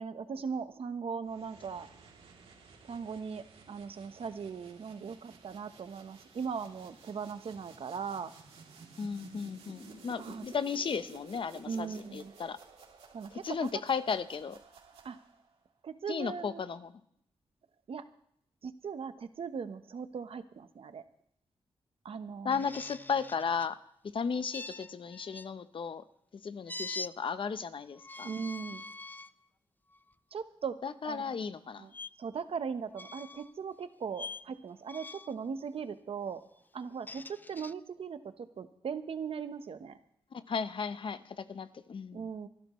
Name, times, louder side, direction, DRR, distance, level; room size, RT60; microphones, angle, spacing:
voice 1, 0.0-1.9 2.8-8.3 10.2-10.4 11.7-12.3 13.1-13.7 15.0-15.2 15.8-16.6 17.9-18.0 18.6-21.0 22.0-22.6 28.2-28.8 30.3-30.7 31.0-31.3 31.8-31.9 32.2-36.4 36.7-37.2 37.5-40.0 42.1-42.5, right 6 dB, 65° right, 10 dB, 1.0 m, -39 dB
sound 1, 1.2-15.5, right 4 dB, 85° right, 3.0 m, -54 dB
voice 2, 9.0-12.6 13.3-14.6 16.1-16.9 22.4-23.7 24.1-26.0 26.4-28.3 30.8-31.9 40.3-42.3, left 6 dB, 55° left, 12 dB, 0.8 m, -35 dB
sound 2, 22.5-23.7 24.5-25.5 26.7-27.1 28.0-29.3 29.9-30.1 31.9-32.1 32.9-33.5 34.1-34.5 34.9-35.4 36.8-37.7, left 3 dB, 20° left, 0.5 m, -44 dB
25.5 x 12.0 x 3.2 m, 0.71 s
cardioid pair, 80°, 10 cm